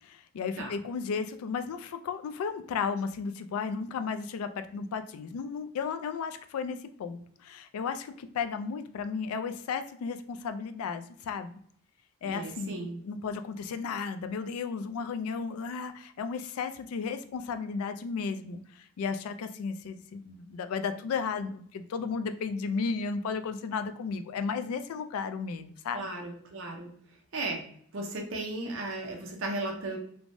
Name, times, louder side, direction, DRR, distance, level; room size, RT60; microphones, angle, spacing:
voice 1, 0.0-11.5 12.2-26.1, left 5 dB, 90° left, 9 dB, 0.3 m, -34 dB
voice 2, 12.2-13.0 25.9-26.9 27.3-27.6 27.9-30.0, right 2 dB, 65° right, 1 dB, 0.6 m, -35 dB
3.2 x 2.1 x 2.6 m, 0.62 s
head